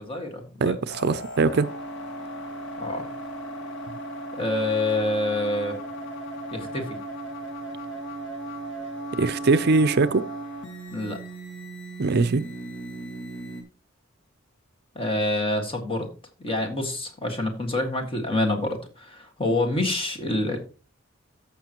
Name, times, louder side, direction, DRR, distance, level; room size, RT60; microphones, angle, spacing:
voice 1, 0.0-0.8 2.8-3.1 4.4-5.8 6.5-7.0 10.9-11.2 15.0-16.1 16.4-20.6, left 2 dB, 25° left, 1.8 m, -27 dB
voice 2, 0.6-1.7 9.2-10.2 12.0-12.4, right 3 dB, 55° right, 0.5 m, -21 dB
sound 1, 0.9-13.6, right 1 dB, 65° left, 1.9 m, -36 dB
14.0 x 5.9 x 3.0 m
head